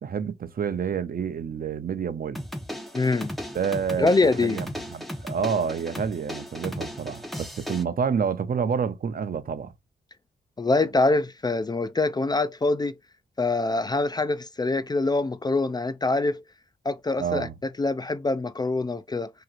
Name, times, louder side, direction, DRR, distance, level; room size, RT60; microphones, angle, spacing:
voice 1, 0.0-2.4 3.5-4.1 4.4-9.7 17.2-17.5, right 6 dB, 55° right, 0.7 m, -28 dB
sound 1, 2.3-7.8, equal, ahead, 1.1 m, -36 dB
voice 2, 2.9-3.3 4.0-4.6 10.6-12.9 13.4-16.4 16.9-17.5 17.8-19.3, left 3 dB, 25° left, 0.3 m, -24 dB
5.9 x 2.9 x 2.5 m
wide cardioid pair, 100°, 18 cm